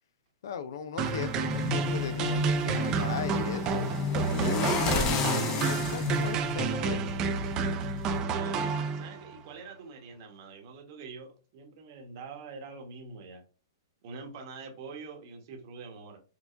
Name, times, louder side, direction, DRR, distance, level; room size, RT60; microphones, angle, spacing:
voice 1, 0.4-3.9 4.5-7.0, left 7 dB, 65° left, 11 dB, 0.4 m, -38 dB
sound 1, 1.0-8.2, left 5 dB, 30° left, 0.6 m, -32 dB
sound 2, 1.0-9.3, right 5 dB, 30° right, 0.4 m, -30 dB
voice 2, 8.3-13.4 14.0-16.2, right 4 dB, 50° right, 3 dB, 1.1 m, -45 dB
4.6 x 2.2 x 2.5 m, 0.36 s
hypercardioid pair, 135°, 2 cm